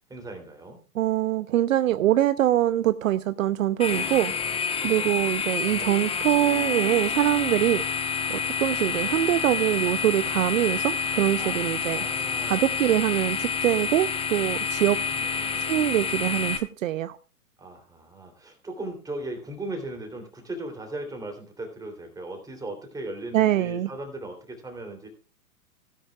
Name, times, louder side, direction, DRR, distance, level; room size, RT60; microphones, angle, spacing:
voice 1, 0.1-0.8 4.8-5.1 11.4-12.8 15.1-15.8 17.6-25.1, right 2 dB, 10° right, 3.1 m, -38 dB
voice 2, 1.0-4.3 4.8-7.8 8.3-12.1 12.5-15.0 15.7-17.2 23.3-23.9, right 13 dB, 55° right, 0.7 m, -24 dB
sound 1, 3.8-16.6, left 5 dB, 10° left, 1.1 m, -28 dB
17.5 x 10.0 x 2.4 m
hypercardioid pair, 115°, 46 cm